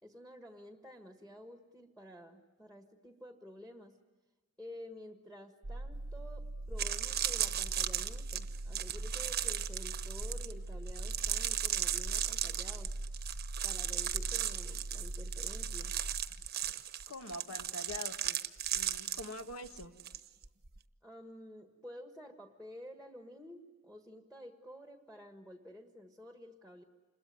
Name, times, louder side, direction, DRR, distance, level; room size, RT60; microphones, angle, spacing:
voice 1, 0.0-4.0 4.6-13.0 13.6-15.9 21.0-26.8, left 1 dB, 5° left, 5 dB, 1.5 m, -51 dB
sound 1, 5.6-16.2, right 1 dB, 80° right, 1.0 m, -41 dB
sound 2, 6.2-6.3 6.7-20.2 20.4-20.8, right 11 dB, 45° right, 1.0 m, -36 dB
voice 2, 17.1-18.5 18.7-19.9, left 2 dB, 80° left, 7 dB, 1.8 m, -44 dB
27.5 x 21.5 x 9.5 m, 1.3 s
head